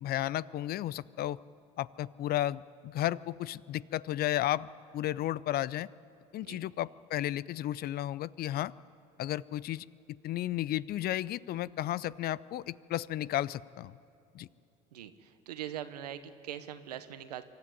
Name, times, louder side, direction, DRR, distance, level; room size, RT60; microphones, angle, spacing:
voice 1, 0.0-1.4 1.8-4.7 4.9-5.9 6.3-8.7 9.2-9.9 10.2-13.9 14.3-14.5, left 13 dB, 50° left, 21 dB, 0.5 m, -33 dB
voice 2, 14.9-17.4, right 11 dB, 90° right, 11 dB, 1.0 m, -42 dB
24.5 x 12.5 x 9.8 m, 2.6 s
hypercardioid pair, 65°, 20 cm